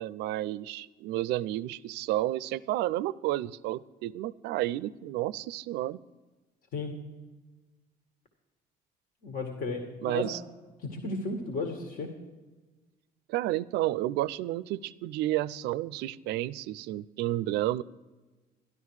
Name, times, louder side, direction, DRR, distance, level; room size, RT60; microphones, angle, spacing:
voice 1, 0.0-6.0 10.0-10.4 13.3-17.8, right 15 dB, 85° right, 18 dB, 0.4 m, -31 dB
voice 2, 9.2-10.3 10.8-12.1, left 3 dB, 60° left, 4 dB, 1.9 m, -34 dB
12.5 x 12.0 x 4.8 m, 1.2 s
cardioid pair, 110°, 17 cm